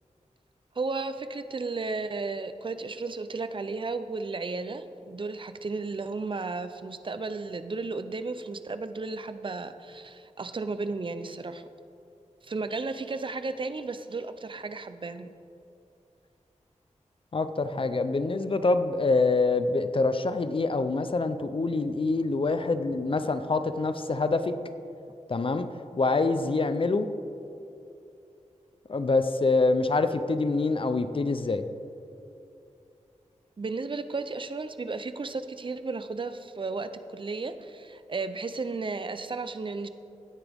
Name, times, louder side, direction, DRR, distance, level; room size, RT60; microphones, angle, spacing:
voice 1, 0.8-11.7 12.4-15.3 33.6-39.9, right 3 dB, 40° right, 10 dB, 0.6 m, -34 dB
voice 2, 17.3-24.5 25.3-25.7 26.0-27.1 28.9-31.6, left 3 dB, 45° left, 10 dB, 0.6 m, -25 dB
16.5 x 9.8 x 3.5 m, 2.7 s
wide cardioid pair, 105°, 13 cm